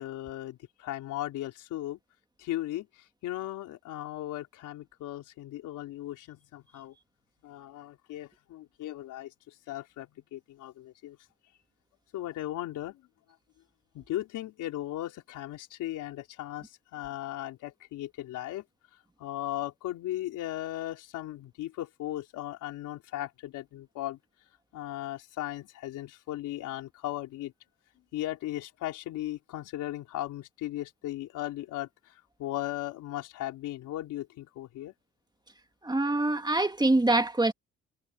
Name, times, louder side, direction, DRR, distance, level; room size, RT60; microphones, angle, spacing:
voice 1, 0.0-2.0 2.4-6.9 7.4-11.2 12.1-13.0 13.9-18.6 19.2-24.2 24.7-27.5 28.1-31.9 32.4-34.9, left 14 dB, 90° left, 4.0 m, -37 dB
voice 2, 35.8-37.5, right 2 dB, 15° right, 1.9 m, -24 dB
cardioid pair, 90°, 30 cm